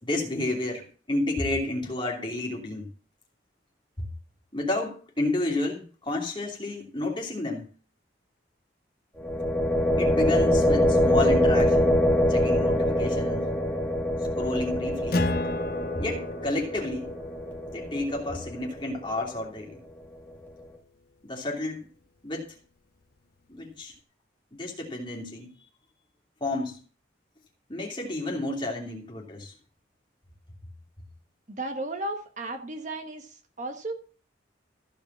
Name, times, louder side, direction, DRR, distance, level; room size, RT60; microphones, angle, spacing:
voice 1, 0.0-2.9 4.0-4.1 4.5-7.6 10.0-12.0 12.3-13.5 14.2-15.3 16.0-17.1 17.7-19.8 21.2-21.9 22.2-22.5 23.5-23.9 24.5-25.6 26.4-26.8 27.7-29.5, left 2 dB, 25° left, 0 dB, 3.0 m, -31 dB
sound 1, 9.2-19.0, equal, 10° left, 1.8 m, -24 dB
Acoustic guitar, 15.1-20.1, left 2 dB, 50° left, 0.8 m, -35 dB
voice 2, 31.5-33.9, right 2 dB, 40° right, 4 dB, 1.2 m, -34 dB
14.5 x 5.2 x 7.3 m, 0.40 s
head